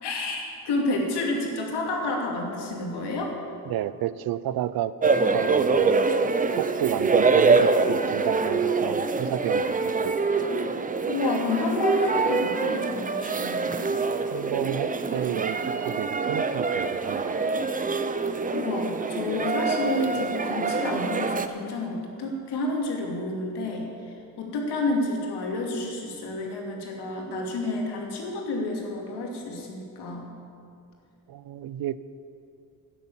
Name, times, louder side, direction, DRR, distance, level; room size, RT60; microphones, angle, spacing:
voice 1, 0.0-3.3 11.1-13.9 18.5-30.3, left 2 dB, 85° left, 0 dB, 2.6 m, -30 dB
voice 2, 3.7-4.9 5.3-6.0 6.5-10.2 14.3-17.4 31.3-32.0, right 12 dB, 65° right, 16 dB, 0.6 m, -31 dB
sound 1, 5.0-21.5, right 4 dB, 20° right, 0.6 m, -25 dB
11.5 x 9.8 x 7.3 m, 2.5 s
cardioid pair, 110°, 39 cm